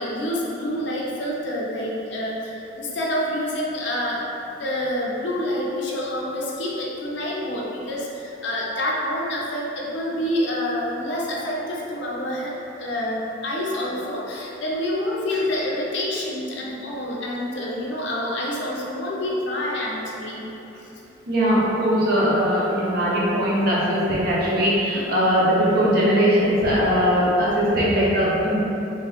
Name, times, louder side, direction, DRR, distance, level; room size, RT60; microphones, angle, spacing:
voice 1, 0.0-4.2 4.5-20.4 20.8-20.9, left 1 dB, 60° left, -4 dB, 0.5 m, -27 dB
voice 2, 21.3-28.6, equal, 50° right, -7 dB, 0.7 m, -20 dB
3.4 x 2.4 x 3.3 m, 3.0 s
head